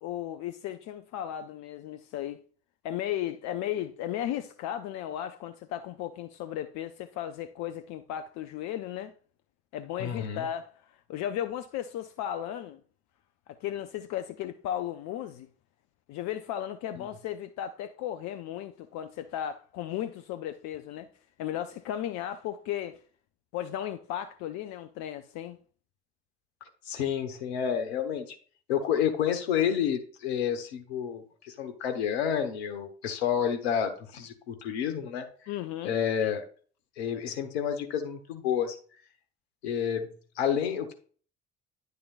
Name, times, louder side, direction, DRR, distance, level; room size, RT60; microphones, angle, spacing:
voice 1, 0.0-2.4 2.8-9.1 9.7-12.8 13.5-15.5 16.1-21.1 21.4-23.0 23.5-25.6 35.5-36.0, left 11 dB, 55° left, 0.6 m, -35 dB
voice 2, 10.0-10.5 17.0-17.1 26.9-28.4 28.7-35.3 35.8-36.4 37.0-38.7 39.6-40.1 40.4-40.9, left 8 dB, 75° left, 1.1 m, -29 dB
10.0 x 6.5 x 2.4 m
figure-of-eight pair, 50°, 32 cm